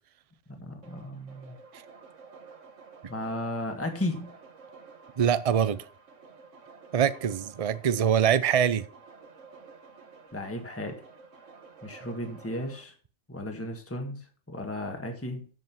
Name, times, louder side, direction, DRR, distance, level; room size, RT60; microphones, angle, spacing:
voice 1, 0.5-1.6 3.1-4.3 10.3-11.0 11.8-12.9 13.3-15.5, left 1 dB, 10° left, 1.5 m, -35 dB
sound 1, 0.8-12.8, right 4 dB, 85° right, 1.7 m, -51 dB
voice 2, 5.2-5.8 6.9-8.8, right 8 dB, 40° right, 0.6 m, -24 dB
7.8 x 7.6 x 5.9 m
omnidirectional pair, 1.2 m